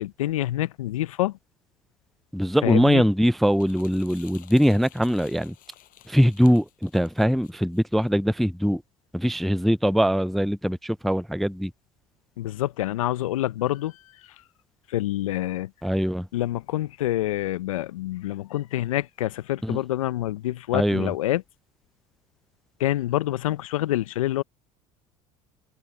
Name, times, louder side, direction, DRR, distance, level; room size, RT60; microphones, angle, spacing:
voice 1, 0.0-1.3 2.6-3.0 12.4-14.0 14.9-15.7 16.3-21.4 22.8-24.4, left 14 dB, 85° left, 0.6 m, -27 dB
voice 2, 2.3-5.5 6.1-8.8 9.1-11.7 15.8-16.3 19.6-19.8 20.7-21.1, equal, ahead, 0.3 m, -22 dB
sound 1, 3.4-8.1, left 14 dB, 55° left, 5.6 m, -52 dB
hypercardioid pair, 75°, 17 cm